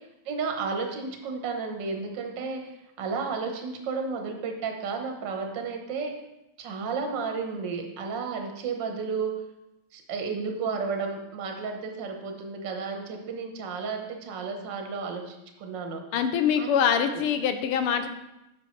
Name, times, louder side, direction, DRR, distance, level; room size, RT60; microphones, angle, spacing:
voice 1, 0.2-6.1 6.6-9.3 9.9-16.0 16.6-16.7 17.1-17.2, right 5 dB, 60° right, 3 dB, 1.7 m, -32 dB
voice 2, 16.1-18.1, left 8 dB, 80° left, 8 dB, 1.6 m, -24 dB
9.6 x 7.0 x 3.2 m, 0.92 s
omnidirectional pair, 2.4 m